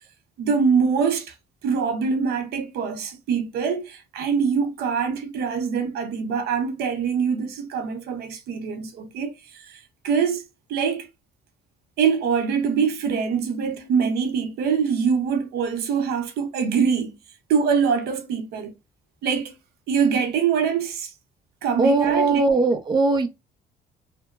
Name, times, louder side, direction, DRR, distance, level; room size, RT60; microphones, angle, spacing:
voice 1, 0.4-1.3 1.6-10.4 10.7-11.1 12.0-17.2 17.5-18.7 19.2-19.6 19.9-21.1 21.6-22.4, right 6 dB, 75° right, 0.7 m, -24 dB
voice 2, 21.8-23.3, right 3 dB, 25° right, 0.6 m, -19 dB
2.8 x 2.1 x 2.2 m
cardioid pair, 110°, 17 cm